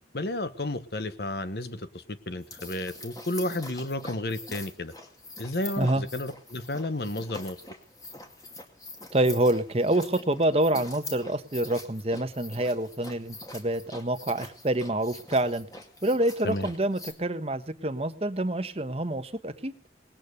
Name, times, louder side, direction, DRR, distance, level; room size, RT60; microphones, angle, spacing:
voice 1, 0.1-4.9 5.4-7.6 16.4-16.7, left 1 dB, 65° left, 12 dB, 1.2 m, -32 dB
sound 1, 2.4-17.1, left 2 dB, 20° left, 2.3 m, -44 dB
voice 2, 9.1-15.7 16.0-19.7, right 1 dB, 35° right, 10 dB, 1.1 m, -27 dB
19.5 x 8.8 x 6.8 m, 0.42 s
head